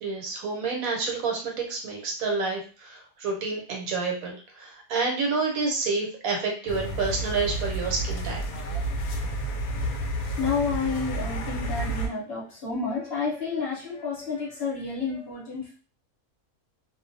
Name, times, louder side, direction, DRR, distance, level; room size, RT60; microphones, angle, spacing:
voice 1, 0.0-8.4, right 4 dB, 70° right, 1 dB, 1.1 m, -29 dB
sound 1, 6.7-12.1, right 1 dB, 75° left, 1.0 m, -30 dB
voice 2, 10.4-15.8, left 5 dB, 50° left, -6 dB, 0.9 m, -30 dB
2.4 x 2.2 x 2.6 m, 0.37 s
omnidirectional pair, 1.6 m